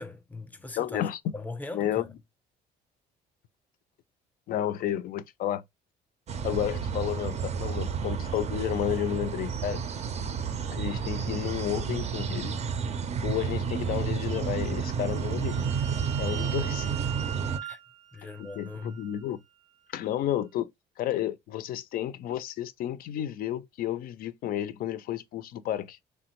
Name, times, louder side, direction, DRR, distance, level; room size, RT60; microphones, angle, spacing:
voice 1, 0.0-1.0 1.3-2.1 17.6-17.8 18.1-19.1, left 3 dB, 10° left, 0.5 m, -40 dB
voice 2, 0.8-1.3 1.7-2.1 4.5-5.6 6.4-9.8 10.7-12.6 13.2-15.7 16.2-16.9 18.4-19.4 19.9-20.7 21.0-26.0, left 11 dB, 60° left, 0.4 m, -31 dB
sound 1, 6.3-17.6, right 6 dB, 40° right, 0.4 m, -31 dB
sound 2, 14.8-19.3, right 11 dB, 90° right, 0.6 m, -42 dB
3.2 x 2.1 x 2.9 m
cardioid pair, 110°, 17 cm